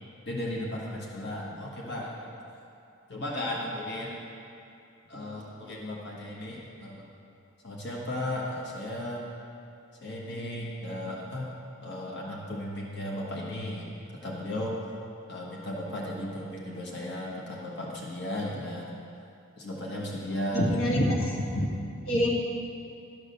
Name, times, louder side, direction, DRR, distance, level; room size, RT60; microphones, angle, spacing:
voice 1, 0.3-2.3 3.1-4.2 5.1-7.1 7.6-9.2 10.0-11.5 11.8-13.9 14.2-14.8 15.3-18.9 19.6-20.7 21.2-21.3, left 1 dB, 50° left, -3 dB, 1.3 m, -35 dB
voice 2, 20.5-21.7 22.1-22.3, equal, 70° left, -2 dB, 1.3 m, -26 dB
12.0 x 4.8 x 6.7 m, 2.7 s
head